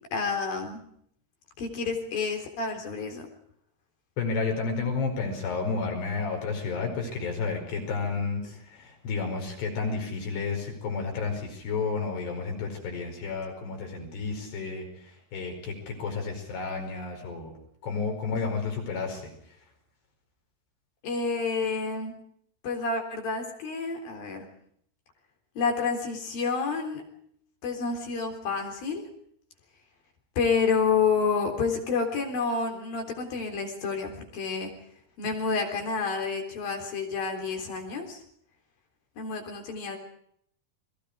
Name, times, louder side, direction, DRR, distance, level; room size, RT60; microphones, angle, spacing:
voice 1, 0.1-0.8 1.6-3.3 21.0-22.1 22.6-24.5 25.6-27.0 27.6-29.0 30.4-34.7 35.2-38.2 39.2-40.0, left 5 dB, 60° left, 3 dB, 5.4 m, -29 dB
voice 2, 4.2-17.5 17.8-19.3, left 4 dB, 90° left, 3 dB, 7.0 m, -31 dB
29.5 x 21.0 x 5.0 m, 0.67 s
omnidirectional pair, 4.6 m